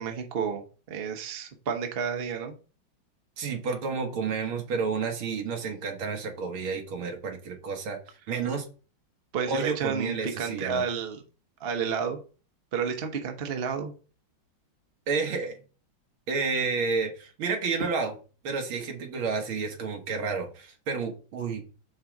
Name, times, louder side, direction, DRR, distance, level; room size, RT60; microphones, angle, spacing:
voice 1, 0.0-2.5 9.3-11.2 11.6-12.2 12.7-13.9, right 6 dB, 40° right, 4 dB, 0.8 m, -31 dB
voice 2, 3.4-8.0 8.3-8.7 9.5-10.8 15.1-15.6 16.3-18.2 18.4-21.6, right 5 dB, 85° right, 3 dB, 2.2 m, -30 dB
5.6 x 3.7 x 5.8 m, 0.36 s
omnidirectional pair, 2.2 m